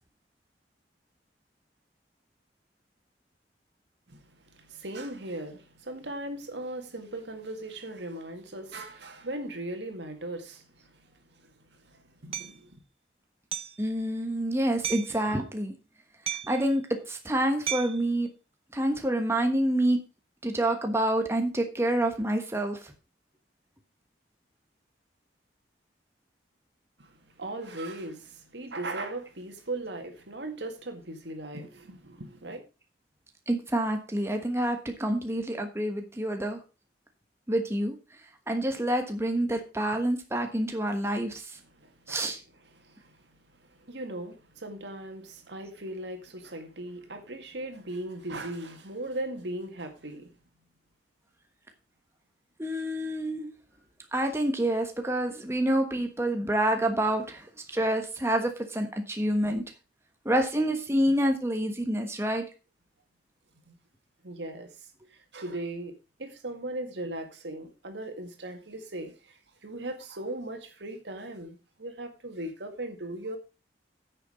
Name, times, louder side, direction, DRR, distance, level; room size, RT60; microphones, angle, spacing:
voice 1, 4.1-11.0 11.4-11.5 11.8-12.8 27.0-32.6 41.8-42.2 42.7-43.2 43.8-50.3 63.7-63.8 64.2-64.7 65.1-65.9 66.2-73.4, right 1 dB, 75° right, 2.1 m, -38 dB
Hammer, 12.3-12.5 13.5-13.8 14.8-15.2 16.3-16.7 17.7-18.0, right 10 dB, 35° right, 0.6 m, -34 dB
voice 2, 13.8-15.7 16.4-18.3 18.7-20.0 20.4-22.9 33.5-36.6 37.5-38.0 38.5-41.6 42.1-42.4 52.6-53.5 54.1-59.6 60.2-62.4, right 1 dB, 15° right, 1.3 m, -27 dB
9.7 x 6.8 x 5.0 m
head